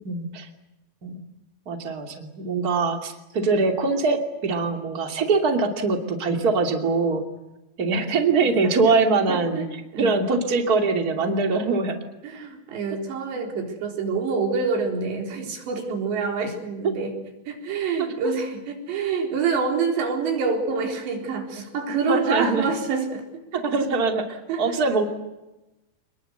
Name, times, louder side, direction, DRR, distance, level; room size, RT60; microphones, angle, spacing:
voice 1, 0.0-0.5 1.0-1.2 1.7-7.2 7.8-12.0 18.2-18.3 22.1-22.6 23.5-25.0, right 4 dB, 25° right, 4 dB, 2.6 m, -23 dB
voice 2, 9.3-10.2 12.2-17.1 17.5-23.4 24.5-24.7, right 5 dB, 90° right, 3 dB, 6.3 m, -27 dB
27.5 x 21.5 x 8.1 m, 1.0 s
omnidirectional pair, 4.9 m